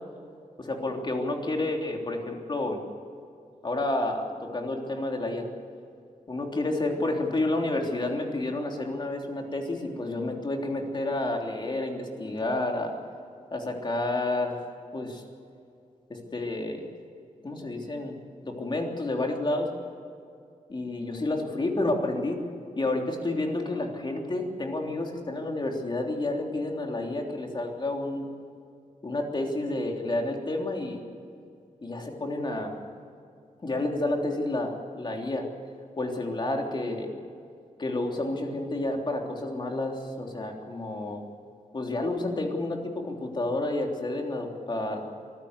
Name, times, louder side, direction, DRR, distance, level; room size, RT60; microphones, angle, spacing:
voice 1, 0.6-2.8 3.6-5.5 6.3-13.0 13.5-14.6 14.9-15.2 16.1-16.8 17.4-18.1 18.4-19.7 20.7-22.4 22.8-28.3 29.0-31.0 31.8-32.7 33.6-35.5 36.0-37.1 37.8-41.2 41.7-45.1, left 2 dB, 35° left, 2 dB, 3.3 m, -30 dB
24.5 x 15.0 x 8.2 m, 2.4 s
wide cardioid pair, 135°, 14 cm